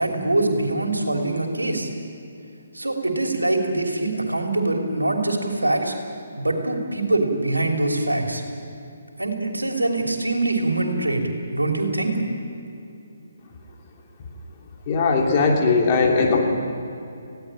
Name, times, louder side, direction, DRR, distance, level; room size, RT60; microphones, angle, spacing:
voice 1, 0.0-1.9 2.7-5.9 6.4-8.4 9.2-11.2 11.5-12.2, right 2 dB, 90° right, 2 dB, 3.2 m, -23 dB
voice 2, 14.9-16.5, left 4 dB, 35° left, 0 dB, 3.2 m, -19 dB
20.0 x 16.5 x 8.8 m, 2.7 s
figure-of-eight pair, 140°, 0 cm